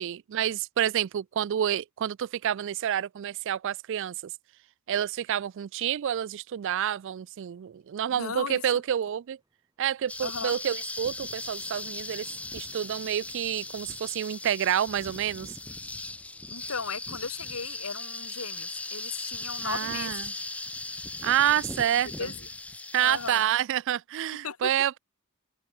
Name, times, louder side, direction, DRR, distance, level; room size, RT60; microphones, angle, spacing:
voice 1, 0.0-4.2 4.9-9.4 9.8-12.3 12.5-15.5 19.6-20.2 21.2-22.3 22.9-25.0, right 10 dB, 60° right, 0.3 m, -28 dB
voice 2, 8.1-8.8 10.2-10.5 16.5-20.1 21.8-22.5 23.0-23.5 24.4-24.7, left 5 dB, 80° left, 1.7 m, -36 dB
sound 1, 8.9-19.7, equal, 20° right, 6.5 m, -63 dB
sound 2, 10.1-23.4, left 2 dB, 5° left, 0.4 m, -38 dB
open air
head